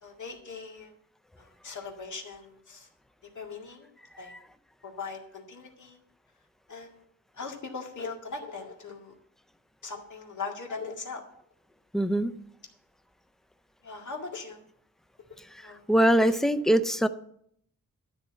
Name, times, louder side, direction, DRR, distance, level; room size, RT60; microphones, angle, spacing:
voice 1, 0.0-0.9 1.4-2.9 3.3-3.9 4.2-4.3 4.8-6.0 6.7-7.0 7.3-9.2 9.8-11.2 13.8-14.6 15.6-15.8, left 4 dB, 60° left, 1 dB, 2.0 m, -40 dB
voice 2, 11.9-12.3 15.9-17.1, right 1 dB, ahead, 11 dB, 0.5 m, -22 dB
12.5 x 4.4 x 7.6 m, 0.67 s
wide cardioid pair, 150°, 33 cm